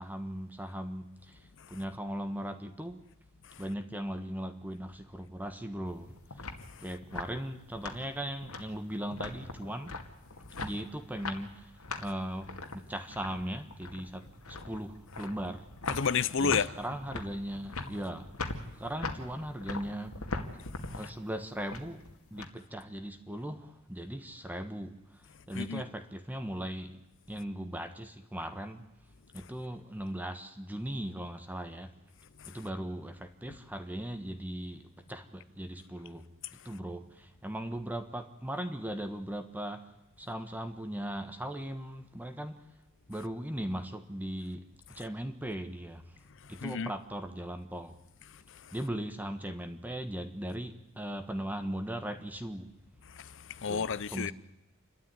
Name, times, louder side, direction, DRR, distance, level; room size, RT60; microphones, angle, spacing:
voice 1, 0.0-3.0 3.6-6.5 6.8-10.0 10.6-15.7 16.4-20.2 20.5-20.6 20.9-22.0 22.3-26.9 27.3-28.9 29.3-31.9 32.5-36.3 36.6-39.9 40.2-42.6 43.1-46.2 46.5-48.0 48.7-52.7 53.7-54.3, right 1 dB, 10° right, 1.3 m, -38 dB
sound 1, 5.9-22.5, left 3 dB, 85° left, 2.3 m, -42 dB
voice 2, 15.9-16.7 25.5-25.8 46.6-46.9 53.1-54.3, left 6 dB, 60° left, 0.8 m, -30 dB
28.5 x 12.5 x 9.7 m
head